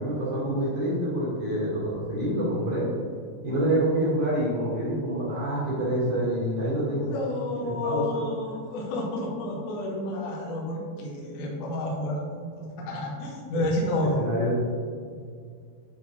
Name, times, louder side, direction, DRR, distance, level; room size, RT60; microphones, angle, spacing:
voice 1, 0.0-2.9 3.4-7.1 7.6-8.2 14.0-14.6, right 1 dB, 50° right, -7 dB, 2.6 m, -27 dB
voice 2, 7.0-14.2, left 1 dB, 90° left, -2 dB, 1.7 m, -30 dB
9.7 x 3.9 x 4.5 m, 2.2 s
omnidirectional pair, 5.7 m